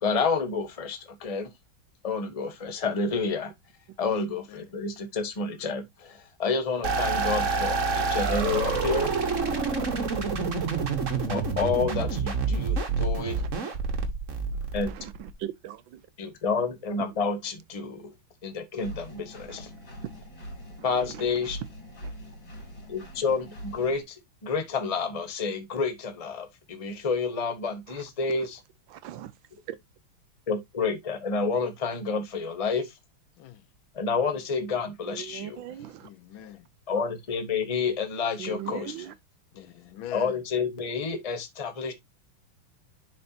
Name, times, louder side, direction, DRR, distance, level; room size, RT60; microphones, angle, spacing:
voice 1, 0.0-1.5 2.0-3.5 4.0-9.1 11.3-13.4 14.7-14.9 16.2-18.1 18.4-19.7 20.8-21.6 22.9-28.6 30.5-32.9 33.9-35.6 36.9-38.9 40.1-41.9, left 4 dB, 25° left, 0.9 m, -29 dB
voice 2, 4.1-4.7 33.4-33.6 36.0-36.6 39.5-40.3, left 11 dB, 75° left, 1.5 m, -43 dB
sound 1, 6.8-15.3, right 4 dB, 40° right, 1.4 m, -27 dB
voice 3, 13.2-13.5 14.9-16.0 20.8-20.9 21.1-21.2 28.9-29.3 29.7-29.8 35.1-36.1 38.4-39.1, right 12 dB, 75° right, 1.3 m, -39 dB
Engine, 18.8-24.0, equal, 60° left, 3.6 m, -43 dB
11.0 x 4.3 x 2.7 m
omnidirectional pair, 2.3 m